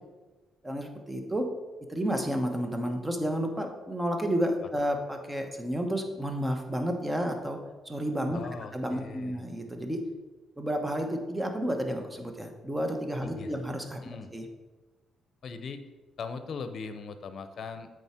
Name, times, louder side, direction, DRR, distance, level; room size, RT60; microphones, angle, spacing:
voice 1, 0.6-1.5 1.9-7.6 7.8-8.4 8.7-10.0 10.6-14.5, equal, 15° right, 4 dB, 1.1 m, -31 dB
voice 2, 8.3-9.4 13.3-13.6 14.0-14.4 15.4-15.8 16.2-17.9, left 5 dB, 55° left, 9 dB, 0.7 m, -40 dB
7.9 x 4.9 x 4.4 m, 1.2 s
cardioid pair, 90°, 0 cm